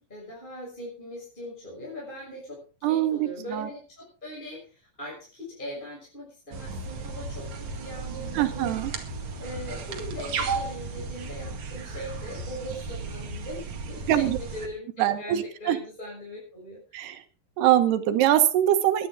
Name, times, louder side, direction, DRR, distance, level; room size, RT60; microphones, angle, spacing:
voice 1, 0.0-8.7 9.4-13.6 13.9-15.3 15.6-17.1, equal, 10° left, -4 dB, 6.4 m, -40 dB
voice 2, 2.8-3.7 8.4-8.9 14.1-14.4 15.0-15.8 16.9-17.2 17.6-19.1, right 12 dB, 80° right, 9 dB, 3.2 m, -23 dB
sound 1, 6.5-14.7, right 4 dB, 50° right, 2.8 m, -35 dB
22.0 x 11.0 x 3.8 m, 0.36 s
omnidirectional pair, 4.7 m